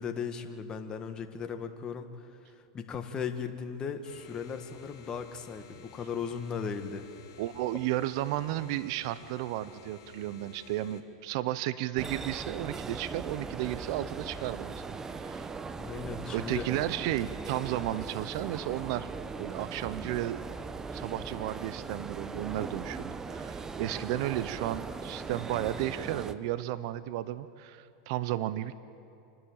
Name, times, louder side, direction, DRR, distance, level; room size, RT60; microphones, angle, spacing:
voice 1, 0.0-7.1 15.8-16.7, left 6 dB, 30° left, 6 dB, 1.8 m, -37 dB
sound 1, 4.0-11.0, left 4 dB, 70° left, 3.4 m, -53 dB
voice 2, 7.4-14.7 15.2-15.5 16.3-19.1 19.4-20.4 20.9-28.8, right 14 dB, 65° right, 15 dB, 0.7 m, -33 dB
sound 2, 12.0-26.3, right 4 dB, 20° right, 0.9 m, -39 dB
27.5 x 12.0 x 8.9 m, 2.6 s
hypercardioid pair, 110°, 3 cm